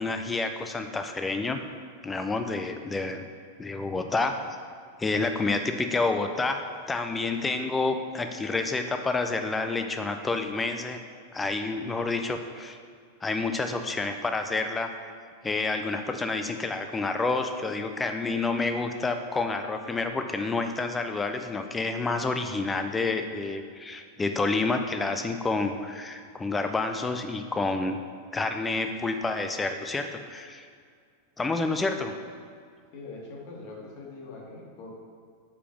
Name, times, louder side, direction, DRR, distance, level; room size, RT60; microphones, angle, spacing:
voice 1, 0.0-1.6 2.0-3.3 3.6-4.4 5.0-11.0 11.3-12.8 13.2-14.9 15.4-28.0 28.3-30.7 31.4-32.2, left 3 dB, 15° left, 6 dB, 0.4 m, -29 dB
voice 2, 32.9-34.9, left 3 dB, 45° left, -3 dB, 1.7 m, -42 dB
5.0 x 4.8 x 6.0 m, 2.2 s
figure-of-eight pair, 90°, 0 cm